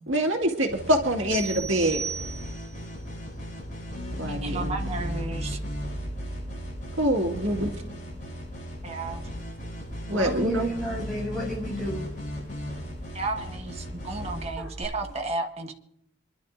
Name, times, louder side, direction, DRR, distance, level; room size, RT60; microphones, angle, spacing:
voice 1, 0.1-2.0 4.2-4.8 7.0-7.7 10.1-10.7, right 1 dB, 85° right, 2 dB, 2.0 m, -25 dB
sound 1, 0.7-14.8, left 1 dB, 40° left, 7.2 m, -37 dB
sound 2, 1.3-2.8, right 5 dB, 25° left, 4.0 m, -35 dB
sound 3, 2.2-15.1, right 1 dB, 60° right, 1.3 m, -40 dB
voice 2, 4.2-5.6 8.8-9.2 13.1-15.7, right 3 dB, 35° right, 3 dB, 1.5 m, -33 dB
voice 3, 10.1-12.1 14.6-14.7, equal, ahead, -5 dB, 7.7 m, -32 dB
27.0 x 12.0 x 2.6 m, 0.70 s
head